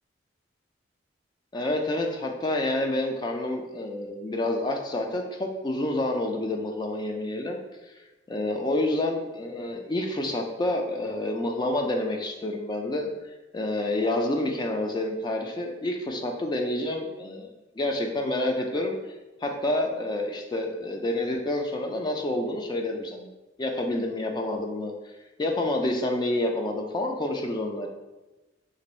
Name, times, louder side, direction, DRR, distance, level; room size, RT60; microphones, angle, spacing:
voice 1, 1.5-7.6 8.3-13.1 13.5-17.5 17.8-19.0 19.4-23.3 23.6-24.9 25.4-27.9, left 1 dB, 25° left, 2 dB, 0.3 m, -28 dB
3.0 x 2.6 x 4.2 m, 1.1 s
head